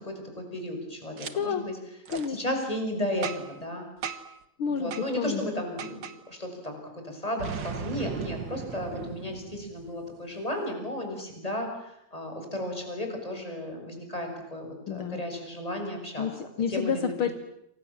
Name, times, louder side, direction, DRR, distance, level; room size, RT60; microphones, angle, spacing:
voice 1, 0.0-1.7 2.3-3.9 4.7-16.3 16.7-17.2, left 1 dB, 10° left, 4 dB, 6.7 m, -34 dB
voice 2, 1.2-1.6 2.1-2.4 4.6-5.5 14.9-15.2 16.2-17.3, left 7 dB, 55° left, 9 dB, 1.4 m, -30 dB
Boom, 1.2-1.3 2.1-2.3 3.2-3.6 4.0-4.4 4.9-5.1 5.8-6.2 7.4-10.1, right 6 dB, 55° right, 1.2 m, -37 dB
28.0 x 26.0 x 7.5 m, 0.78 s
omnidirectional pair, 4.4 m